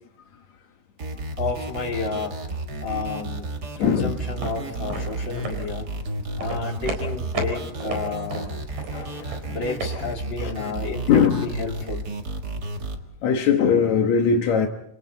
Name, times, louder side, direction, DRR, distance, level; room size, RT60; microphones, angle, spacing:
sound 1, 1.0-13.0, right 2 dB, 80° right, 0.9 m, -32 dB
voice 1, 1.4-2.4 2.8-3.5 3.8-5.9 6.4-8.7 9.5-12.0, left 4 dB, 30° left, 3.3 m, -31 dB
voice 2, 3.8-4.1 8.9-9.4 10.4-10.5 11.1-11.5 13.2-14.7, left 6 dB, 70° left, 1.7 m, -20 dB
sound 2, 4.2-9.9, right 3 dB, 50° right, 5.7 m, -34 dB
29.5 x 28.0 x 4.1 m
omnidirectional pair, 4.9 m